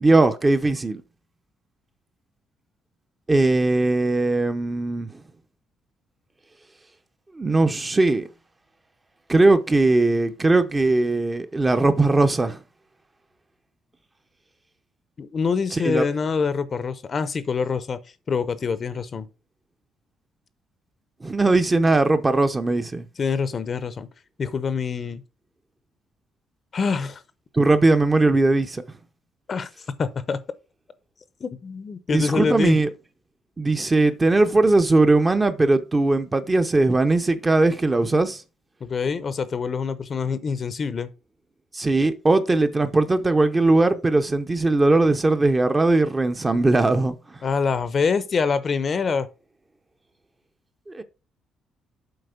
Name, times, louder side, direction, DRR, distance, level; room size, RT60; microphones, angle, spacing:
voice 1, 0.0-1.0 3.3-5.1 7.3-8.3 9.3-12.6 15.7-16.0 21.2-23.0 27.5-28.8 32.1-32.9 33.6-38.4 41.7-47.2 50.9-51.0, right 2 dB, 15° right, 0.7 m, -19 dB
voice 2, 15.2-18.0 18.3-19.3 23.2-24.1 24.4-25.2 26.7-27.2 29.5-29.7 30.0-30.4 31.4-32.8 38.8-41.1 47.4-49.3, left 5 dB, 35° left, 0.7 m, -25 dB
7.9 x 5.1 x 5.1 m
cardioid pair, 155°, 0 cm